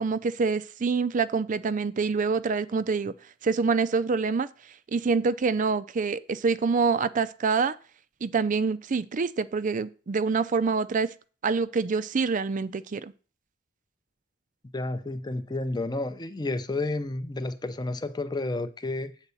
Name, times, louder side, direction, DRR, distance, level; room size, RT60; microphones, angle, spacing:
voice 1, 0.0-3.1 3.4-4.5 4.9-7.7 8.2-11.1 11.4-13.1, right 4 dB, 40° right, 0.4 m, -26 dB
voice 2, 14.7-19.1, left 2 dB, 20° left, 0.6 m, -31 dB
8.2 x 4.1 x 6.9 m
head